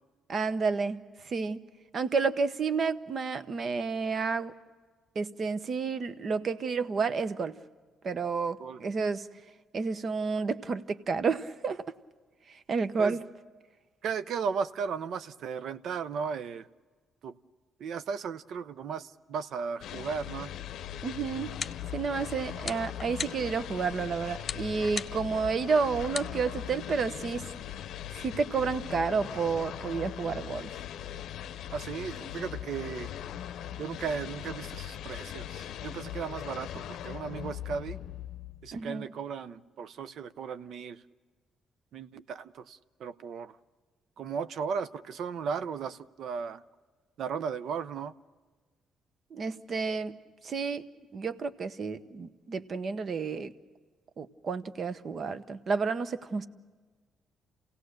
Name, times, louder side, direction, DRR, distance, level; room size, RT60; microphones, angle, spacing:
voice 1, 0.3-1.6 1.9-4.5 5.1-7.5 8.0-9.3 9.7-11.8 12.7-13.2 21.0-21.6 21.9-27.5 28.1-30.7 38.7-39.1 49.3-50.2 50.4-50.8 51.1-53.5 54.2-56.5, right 5 dB, 50° right, 13 dB, 0.9 m, -30 dB
voice 2, 14.0-16.7 17.2-17.3 17.8-20.5 31.7-33.1 33.8-38.0 38.6-41.0 41.9-43.6 44.2-46.6 47.2-48.1, right 6 dB, 70° right, 13 dB, 0.6 m, -36 dB
sound 1, 19.8-38.8, left 11 dB, 80° left, 0.6 m, -40 dB
sound 2, 21.2-27.8, left 5 dB, 40° left, 0.6 m, -42 dB
28.5 x 17.5 x 6.6 m, 1.4 s
cardioid pair, 90°, 0 cm